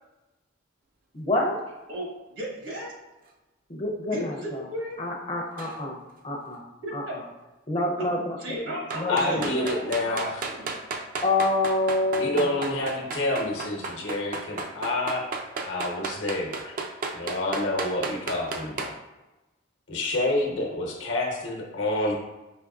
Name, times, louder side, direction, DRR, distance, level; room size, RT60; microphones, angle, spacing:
voice 1, 1.1-1.6 3.7-4.6 5.0-6.0 6.2-6.6 6.9-7.0 7.7-9.5 11.2-13.0, left 2 dB, 30° left, 0 dB, 0.5 m, -27 dB
voice 2, 1.9-3.0 4.1-5.1 6.8-7.2 8.0-8.1 8.4-10.7, equal, 75° right, -3 dB, 1.2 m, -36 dB
sound 1, 5.6-5.8 8.9-18.9, right 3 dB, 45° right, 0.3 m, -33 dB
voice 3, 9.1-10.5 12.2-15.2 15.6-16.8 17.1-18.9 19.9-22.2, left 2 dB, 75° left, 0 dB, 0.9 m, -28 dB
5.1 x 3.0 x 2.4 m, 1.1 s
head